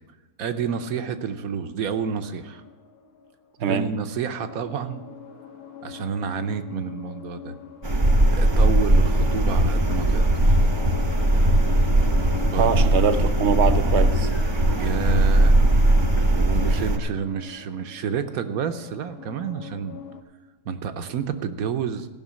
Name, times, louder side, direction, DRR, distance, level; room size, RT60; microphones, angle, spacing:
voice 1, 0.4-2.6 3.7-5.0 5.8-7.6 8.4-10.6 12.4-12.9 14.8-15.6 16.4-20.0 20.6-22.1, right 7 dB, 80° right, 8 dB, 1.2 m, -29 dB
sound 1, 1.8-3.8 4.2-20.2, left 7 dB, 75° left, 1.4 m, -41 dB
sound 2, 7.8-17.0, right 1 dB, 25° right, 0.6 m, -19 dB
voice 2, 12.6-14.3, right 6 dB, 60° right, 11 dB, 0.9 m, -22 dB
15.0 x 5.9 x 7.4 m, 1.2 s
omnidirectional pair, 1.5 m